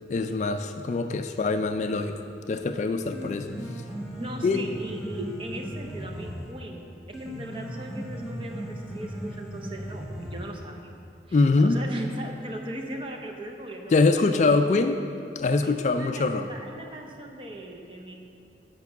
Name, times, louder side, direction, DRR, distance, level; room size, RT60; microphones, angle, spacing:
voice 1, 0.1-2.2 2.5-3.5 4.4-4.6 11.3-11.8 13.9-15.0 15.4-16.5, left 3 dB, 40° left, 8 dB, 0.3 m, -23 dB
Piano, 2.9-10.9, equal, 5° right, 1.0 m, -37 dB
voice 2, 4.2-10.9 11.3-13.9 14.4-14.6 15.6-18.1, right 1 dB, 30° right, 2 dB, 0.7 m, -38 dB
8.2 x 5.3 x 5.9 m, 2.6 s
head